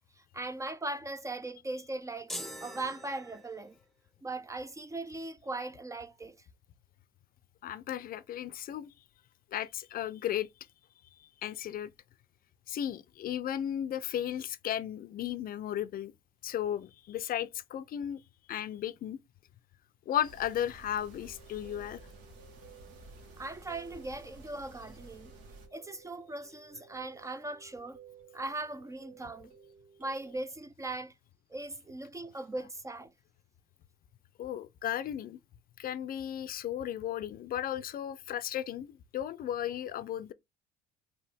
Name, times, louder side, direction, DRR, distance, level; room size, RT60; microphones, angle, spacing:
voice 1, 0.2-2.3 2.6-3.8 4.2-6.4 23.4-25.3 25.7-28.0 28.3-29.5 30.0-31.1 31.5-33.1, right 2 dB, 15° right, 0.4 m, -39 dB
sound 1, 2.3-3.8, left 1 dB, ahead, 0.8 m, -43 dB
voice 2, 7.6-8.9 9.5-10.5 11.2-11.9 12.7-16.1 16.4-18.2 18.5-19.2 20.1-22.0 34.4-35.4 35.8-40.3, left 11 dB, 45° left, 0.5 m, -35 dB
sound 2, 20.2-25.7, right 2 dB, 70° right, 1.8 m, -53 dB
sound 3, 21.1-30.4, right 8 dB, 40° right, 1.8 m, -57 dB
4.5 x 2.8 x 3.4 m
supercardioid pair, 80°, 21 cm